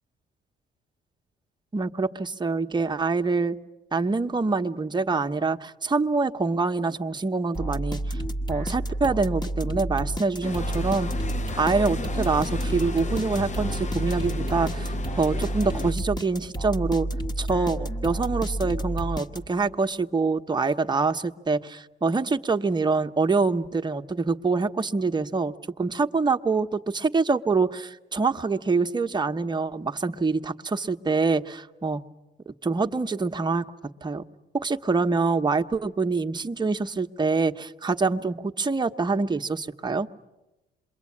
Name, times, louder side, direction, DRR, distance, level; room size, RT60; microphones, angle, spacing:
voice 1, 1.7-3.6 3.9-8.2 8.5-11.1 11.6-17.1 17.4-32.0 32.5-33.7 34.0-34.2 34.5-40.1, right 4 dB, 20° right, 6 dB, 1.0 m, -25 dB
sound 1, 7.5-19.7, right 1 dB, 20° left, 1.4 m, -30 dB
sound 2, 10.4-15.9, left 3 dB, 35° left, 0.9 m, -34 dB
27.0 x 23.0 x 8.6 m, 1.0 s
cardioid pair, 90°, 20 cm